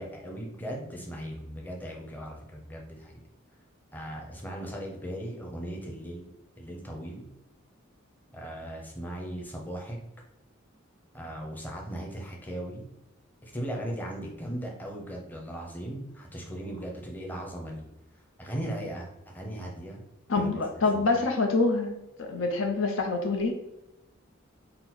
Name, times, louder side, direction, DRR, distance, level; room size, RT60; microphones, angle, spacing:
voice 1, 0.0-3.2 3.9-6.3 6.6-7.3 8.3-10.0 11.1-12.9 13.4-17.8 18.4-20.0 20.4-21.0, right 1 dB, 10° left, -1 dB, 0.7 m, -38 dB
voice 2, 20.3-23.6, left 3 dB, 70° left, 3 dB, 0.7 m, -26 dB
4.1 x 2.0 x 4.3 m, 0.92 s
head